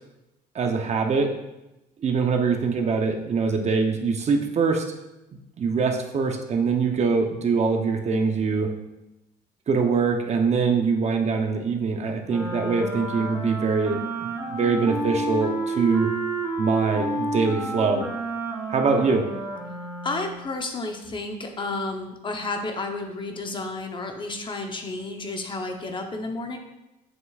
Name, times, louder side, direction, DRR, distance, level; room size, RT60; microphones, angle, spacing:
voice 1, 0.5-1.3 2.0-4.9 5.6-8.7 9.7-16.1 16.6-18.1 18.7-19.2, right 5 dB, 40° right, 3 dB, 0.8 m, -23 dB
Wind instrument woodwind instrument, 12.3-20.5, right 2 dB, 15° right, 1.7 m, -30 dB
voice 2, 20.0-26.6, left 2 dB, 30° left, 4 dB, 0.8 m, -31 dB
7.3 x 6.5 x 2.4 m, 0.95 s
cardioid pair, 110°, 17 cm